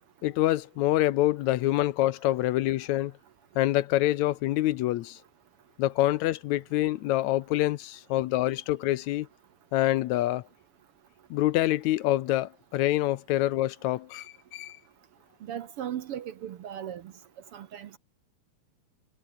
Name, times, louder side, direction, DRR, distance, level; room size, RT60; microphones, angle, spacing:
voice 1, 0.2-3.1 3.6-5.2 5.8-9.3 9.7-10.4 11.3-14.3 14.5-14.8, left 15 dB, 75° left, 1.9 m, -26 dB
voice 2, 15.5-17.0 17.5-18.0, right 10 dB, 65° right, 1.5 m, -37 dB
omnidirectional pair, 3.5 m